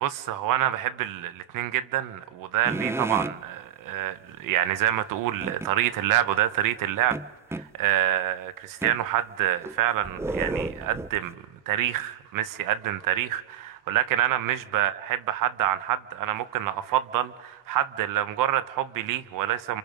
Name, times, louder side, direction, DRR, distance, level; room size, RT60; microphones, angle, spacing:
voice 1, 0.0-7.2 7.5-19.8, right 12 dB, 70° right, 1.3 m, -27 dB
sound 1, 2.6-3.4 5.4-5.7 7.1-7.7 8.8-9.0 9.6-11.3, right 2 dB, 10° right, 0.7 m, -31 dB
28.5 x 27.0 x 5.3 m
cardioid pair, 100°, 34 cm